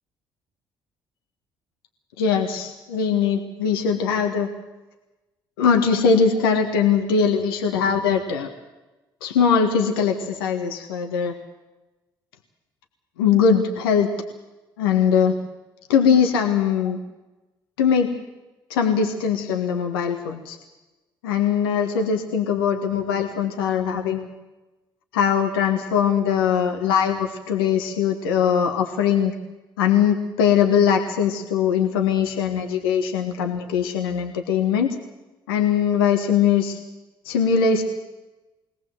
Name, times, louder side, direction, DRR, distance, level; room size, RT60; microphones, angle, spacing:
voice 1, 2.2-4.5 5.6-8.5 9.2-11.3 13.2-14.1 14.8-15.3 15.9-17.0 17.8-18.1 18.7-20.6 21.2-24.3 25.1-29.3 29.8-35.0 35.5-36.8 37.2-37.8, left 7 dB, 80° left, 3 dB, 1.6 m, -21 dB
22.0 x 18.0 x 7.9 m, 1.1 s
hypercardioid pair, 55°, 12 cm